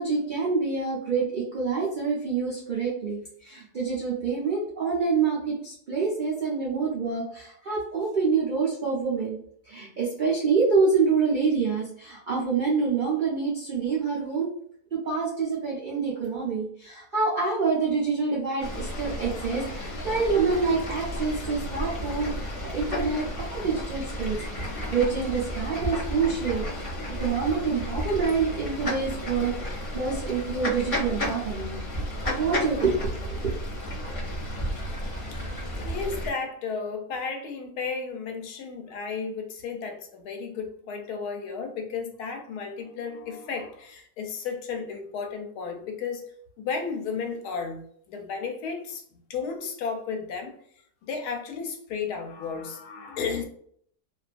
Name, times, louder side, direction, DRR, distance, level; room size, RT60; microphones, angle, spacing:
voice 1, 0.0-9.4 9.6-14.5 14.9-24.6 24.9-26.6 27.2-31.8 32.4-33.5, right 5 dB, 90° right, -5 dB, 0.4 m, -27 dB
Fowl / Bird, 18.6-36.3, left 1 dB, 45° left, 0.4 m, -33 dB
voice 2, 35.8-46.3 46.6-49.0 49.3-50.5 51.0-53.4, left 5 dB, 85° left, 4 dB, 1.1 m, -33 dB
2.5 x 2.3 x 2.4 m, 0.63 s
omnidirectional pair, 1.6 m